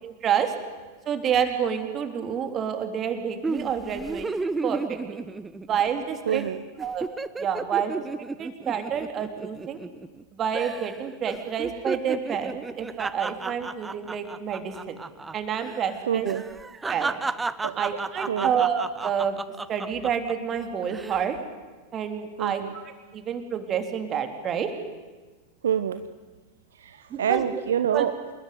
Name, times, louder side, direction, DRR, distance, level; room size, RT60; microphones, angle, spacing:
voice 1, 0.0-0.5 1.1-5.0 5.6-6.4 6.8-7.1 7.4-7.9 8.4-9.8 10.3-15.0 15.3-16.3 16.9-17.2 17.8-19.4 19.7-21.4 21.9-22.8 23.1-24.7 27.1-27.6 27.9-28.0, right 8 dB, 30° right, 7 dB, 3.5 m, -28 dB
sound 1, 3.4-6.0 6.3-6.5 6.8-10.2 10.5-11.0 11.3-15.3 15.6-15.8 16.2-20.3 20.8-21.2, right 3 dB, 10° right, 0.9 m, -33 dB
voice 2, 6.3-6.6 16.1-16.4 17.6-17.8 18.3-18.5 22.4-22.7 25.6-26.0 26.8-28.1, right 9 dB, 65° right, 11 dB, 1.0 m, -26 dB
27.5 x 21.0 x 9.6 m, 1.3 s
figure-of-eight pair, 90°, 0 cm